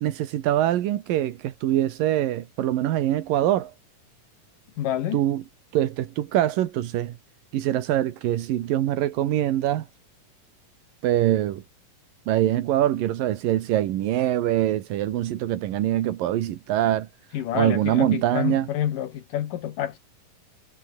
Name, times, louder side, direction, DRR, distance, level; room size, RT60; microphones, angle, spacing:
voice 1, 0.0-3.7 5.1-5.4 5.7-7.2 7.5-9.9 11.0-11.6 12.3-17.1 17.5-18.7, right 12 dB, 85° right, 3.1 m, -24 dB
voice 2, 4.8-5.2 17.3-20.0, left 11 dB, 75° left, 3.3 m, -28 dB
omnidirectional pair, 3.9 m